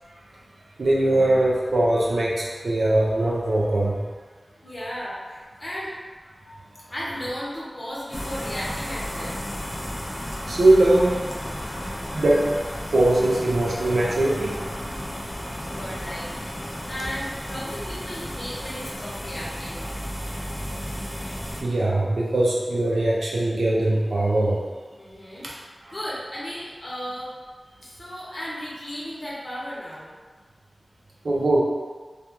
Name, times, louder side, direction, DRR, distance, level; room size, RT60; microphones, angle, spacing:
voice 1, 0.8-4.0 6.4-6.5 10.5-11.3 12.1-14.9 21.6-24.6 25.4-25.5 25.8-25.9 31.2-31.6, right 1 dB, 85° right, -4 dB, 0.5 m, -21 dB
voice 2, 4.4-5.9 6.9-9.4 15.6-19.9 25.0-25.6 25.9-27.3 27.8-30.1, equal, 45° left, -8 dB, 0.9 m, -35 dB
sound 1, 8.1-21.6, equal, 20° left, 0.5 m, -33 dB
2.3 x 2.3 x 2.8 m, 1.4 s
wide cardioid pair, 65°, 0 cm